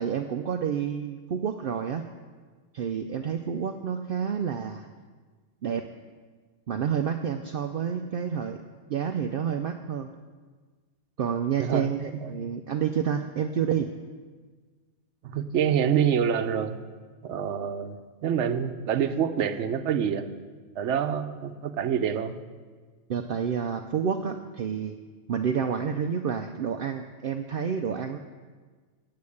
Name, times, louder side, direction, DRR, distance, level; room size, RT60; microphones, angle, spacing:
voice 1, 0.0-2.0 2.7-4.9 5.6-5.9 6.7-8.6 8.9-10.1 11.2-13.9 23.1-25.0 25.3-28.2, right 7 dB, 60° right, 6 dB, 0.7 m, -29 dB
voice 2, 15.2-16.8 17.2-20.3 20.8-22.3, right 8 dB, 75° right, 8 dB, 1.0 m, -26 dB
8.5 x 8.5 x 8.3 m, 1.5 s
omnidirectional pair, 1.2 m